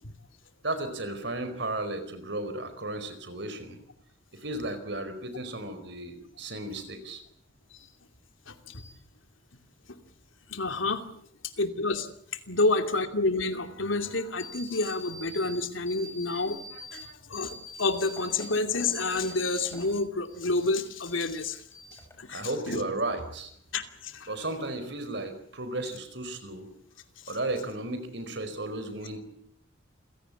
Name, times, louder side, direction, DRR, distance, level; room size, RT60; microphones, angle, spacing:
voice 1, 0.6-3.8 4.3-7.2 22.3-23.5 24.3-26.7 27.3-29.2, right 2 dB, 65° right, 10 dB, 4.6 m, -34 dB
voice 2, 8.5-8.9 10.5-11.0 11.6-12.1 12.5-21.6 22.2-22.8 23.7-24.3, left 3 dB, 85° left, 7 dB, 2.7 m, -29 dB
sound 1, 14.4-15.5 15.9-17.0 17.3-19.9 20.2-21.4 21.7-22.3, left 1 dB, 15° left, 5.8 m, -45 dB
28.5 x 17.0 x 8.5 m, 0.66 s
head